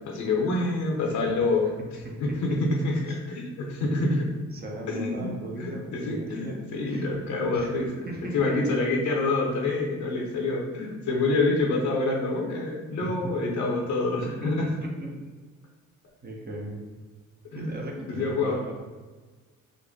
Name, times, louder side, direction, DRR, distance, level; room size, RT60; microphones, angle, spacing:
voice 1, 0.0-1.7 2.2-4.3 4.9-5.3 5.6-7.9 8.3-14.7 17.5-17.7 18.1-18.6, left 2 dB, 70° left, -1 dB, 0.7 m, -27 dB
voice 2, 1.0-1.5 1.8-2.3 3.8-4.0 4.3-7.1 7.3-7.7 8.1-8.5 13.0-13.3 14.2-15.2 16.2-16.8 17.5-18.7, right 1 dB, 30° right, -1 dB, 0.8 m, -38 dB
3.7 x 2.1 x 3.6 m, 1.3 s
cardioid pair, 90°, 30 cm